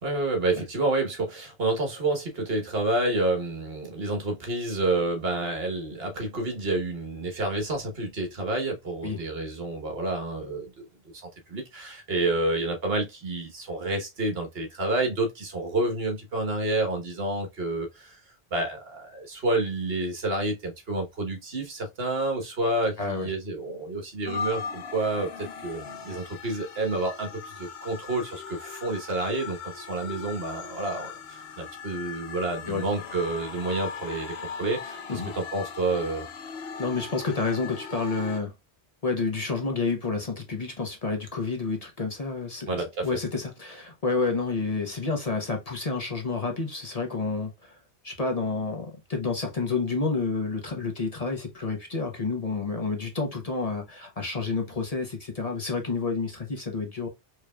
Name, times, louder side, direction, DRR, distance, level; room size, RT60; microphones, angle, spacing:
voice 1, 0.0-10.9 11.5-18.2 18.5-36.3 42.7-43.1, right 2 dB, 65° right, 1.4 m, -29 dB
voice 2, 23.0-23.3 32.7-32.8 35.1-35.3 36.8-38.5 39.0-47.8 48.0-57.1, left 4 dB, 40° left, 0.9 m, -29 dB
sound 1, 24.2-38.4, left 5 dB, 75° left, 1.0 m, -39 dB
4.9 x 3.1 x 2.3 m
omnidirectional pair, 1.1 m